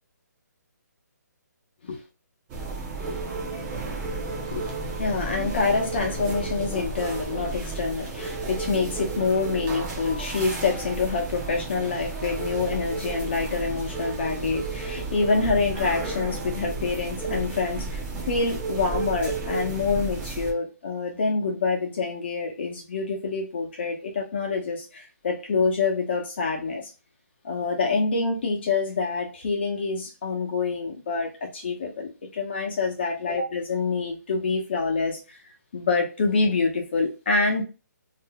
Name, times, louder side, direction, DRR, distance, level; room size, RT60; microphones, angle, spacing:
sound 1, 2.5-20.5, right 3 dB, 10° right, 0.5 m, -32 dB
voice 1, 4.5-26.9 27.4-35.4 35.7-37.6, left 4 dB, 35° left, 0.9 m, -26 dB
3.7 x 2.7 x 2.2 m
hypercardioid pair, 170°, 10 cm